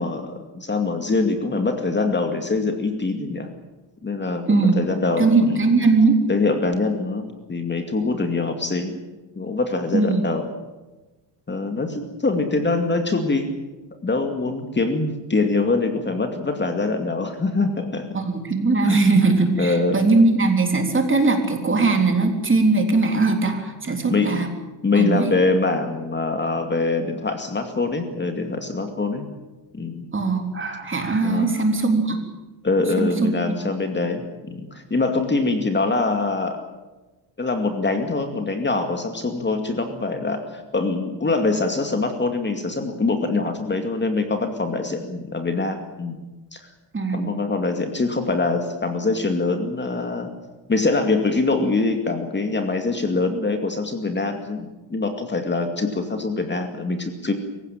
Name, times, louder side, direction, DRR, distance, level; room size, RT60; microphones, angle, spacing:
voice 1, 0.0-3.5 4.0-5.6 6.3-8.9 9.4-10.5 11.5-13.5 14.0-18.1 18.8-19.0 19.6-19.9 24.1-24.4 24.8-29.3 29.7-30.1 31.2-31.5 32.6-36.6 37.4-46.2 46.5-46.6 47.1-50.3 50.7-57.3, left 3 dB, 25° left, 6 dB, 2.3 m, -24 dB
voice 2, 4.5-4.8 5.2-6.2 9.9-10.2 18.1-24.5 24.9-25.3 30.1-32.2 33.0-33.5 46.9-47.3, right 3 dB, 25° right, 4 dB, 3.7 m, -20 dB
24.5 x 16.0 x 9.1 m, 1.1 s
cardioid pair, 125°, 44 cm